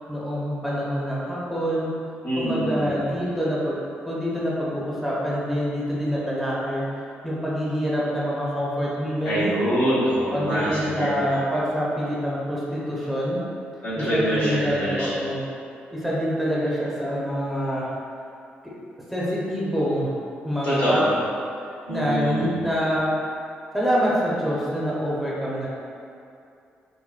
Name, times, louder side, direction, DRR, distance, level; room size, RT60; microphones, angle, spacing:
voice 1, 0.0-1.9 2.3-3.8 4.0-6.8 7.2-9.5 10.3-13.4 14.0-15.4 15.9-17.9 19.1-20.1 20.4-21.0 21.9-23.1 23.7-25.7, equal, ahead, -8 dB, 1.0 m, -26 dB
voice 2, 2.2-3.0 9.2-11.3 13.8-15.1 20.6-21.1 21.9-22.6, equal, 90° left, -12 dB, 1.5 m, -25 dB
4.0 x 2.5 x 2.5 m, 2.5 s
supercardioid pair, 55°, 4 cm